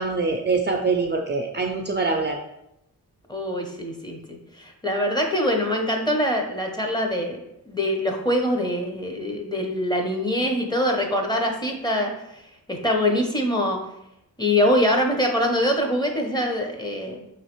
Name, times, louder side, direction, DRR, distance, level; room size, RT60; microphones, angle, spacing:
voice 1, 0.0-2.4, right 4 dB, 30° right, 2 dB, 0.4 m, -24 dB
voice 2, 3.3-7.4 7.7-12.4 12.7-13.8 14.4-17.2, left 1 dB, 10° left, 2 dB, 0.7 m, -24 dB
5.5 x 3.1 x 3.0 m, 0.84 s
wide cardioid pair, 90°, 36 cm